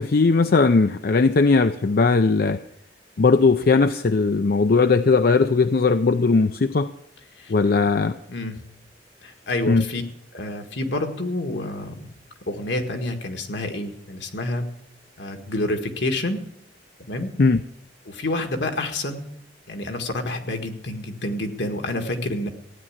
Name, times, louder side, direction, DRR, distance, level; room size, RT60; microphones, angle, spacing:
voice 1, 0.0-2.6 3.2-6.9 7.5-8.2 9.7-9.8 17.4-17.6, left 4 dB, 55° left, 9 dB, 0.5 m, -18 dB
voice 2, 9.2-10.0 10.3-12.1 12.5-14.7 15.2-16.4 17.0-17.3 18.1-19.2 19.7-22.5, left 2 dB, 75° left, 5 dB, 1.8 m, -28 dB
15.5 x 9.7 x 7.3 m, 0.77 s
head